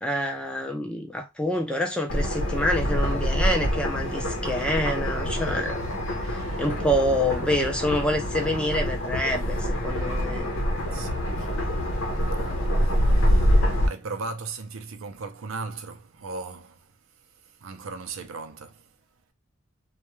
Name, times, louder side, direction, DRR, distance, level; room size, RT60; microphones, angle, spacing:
voice 1, 0.0-5.8 6.6-10.5, equal, 5° left, 0.4 m, -27 dB
sound 1, 2.1-13.9, equal, 90° left, 0.7 m, -25 dB
sound 2, 4.6-7.2, right 1 dB, 40° right, 0.7 m, -50 dB
voice 2, 10.8-11.8 12.2-18.9, right 4 dB, 80° right, 0.5 m, -38 dB
2.3 x 2.2 x 3.0 m
head